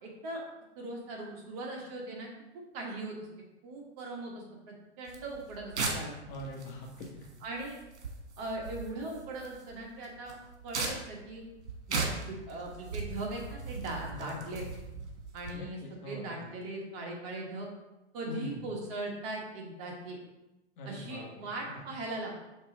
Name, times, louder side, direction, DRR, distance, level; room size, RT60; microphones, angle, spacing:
voice 1, 0.0-0.4 0.8-2.3 2.7-3.1 3.6-6.2 7.4-7.8 8.4-10.4 10.6-11.4 11.9-14.6 15.3-17.7 18.1-20.2 20.8-22.4, right 2 dB, 35° right, -1 dB, 1.2 m, -39 dB
sound 1, 5.1-15.5, right 3 dB, 70° right, 1.6 m, -39 dB
voice 2, 6.3-7.3 14.1-14.6 15.5-16.3 18.3-18.6 20.8-22.0, left 1 dB, 45° left, 0 dB, 1.4 m, -43 dB
5.3 x 3.7 x 5.0 m, 0.99 s
hypercardioid pair, 140°, 34 cm